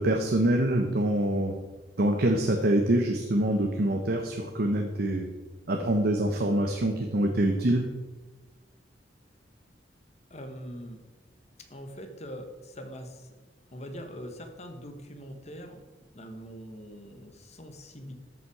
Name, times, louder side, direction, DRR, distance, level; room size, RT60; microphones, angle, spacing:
voice 1, 0.0-1.6 2.0-5.3 5.7-7.8, right 1 dB, 60° right, 4 dB, 0.8 m, -25 dB
voice 2, 10.3-11.0 11.7-13.3 13.7-18.1, equal, 40° left, 6 dB, 1.2 m, -43 dB
13.5 x 5.7 x 4.8 m, 1.2 s
head